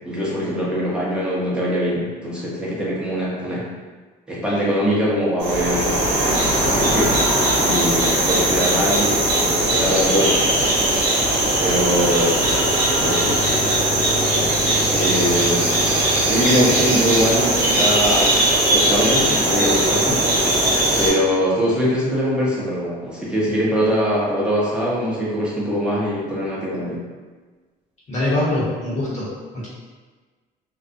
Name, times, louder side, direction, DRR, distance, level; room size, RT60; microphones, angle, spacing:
voice 1, 0.0-3.6 4.3-6.0 6.5-7.2 7.6-10.7 11.6-12.4 12.9-13.4 14.9-15.8 16.3-18.3 18.7-20.5 21.0-27.0, equal, 5° right, -8 dB, 0.7 m, -22 dB
sound 1, 5.4-21.1, right 1 dB, 80° right, 1.0 m, -19 dB
voice 2, 28.1-29.7, left 1 dB, 45° left, -8 dB, 0.9 m, -23 dB
2.3 x 2.0 x 2.6 m, 1.4 s
cardioid pair, 110°, 17 cm